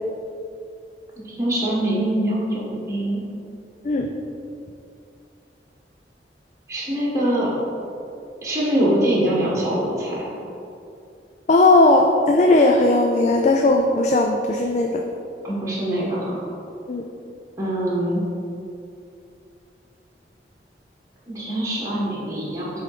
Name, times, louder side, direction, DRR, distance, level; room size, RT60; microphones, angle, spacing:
voice 1, 1.2-3.2 6.7-7.5 8.4-10.3 15.4-16.4 17.6-18.2 21.3-22.8, right 1 dB, 15° right, -7 dB, 1.5 m, -23 dB
voice 2, 11.5-15.0 16.9-17.0, left 2 dB, 40° left, 2 dB, 0.4 m, -17 dB
7.5 x 3.6 x 5.0 m, 2.6 s
head